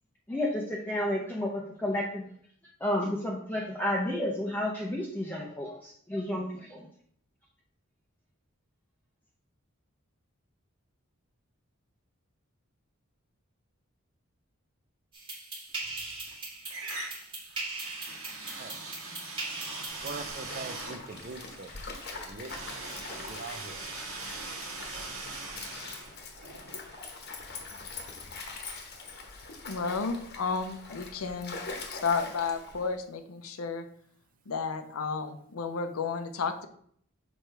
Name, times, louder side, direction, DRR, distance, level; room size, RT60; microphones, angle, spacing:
voice 1, 0.3-2.3 2.8-6.9, left 1 dB, 10° left, -2 dB, 0.6 m, -31 dB
sound 1, 15.1-20.3, right 2 dB, 25° right, 1.3 m, -39 dB
sound 2, 15.8-16.4 16.7-27.5, right 3 dB, 80° right, 1.5 m, -42 dB
Stream, 19.9-32.9, left 4 dB, 50° left, 1.0 m, -43 dB
voice 2, 20.0-21.7 22.1-22.7 23.2-23.8, right 3 dB, 40° right, 9 dB, 0.5 m, -42 dB
voice 3, 29.6-31.5 31.9-33.8 34.5-36.7, left 5 dB, 85° left, 8 dB, 0.6 m, -32 dB
6.2 x 4.6 x 3.3 m, 0.64 s
head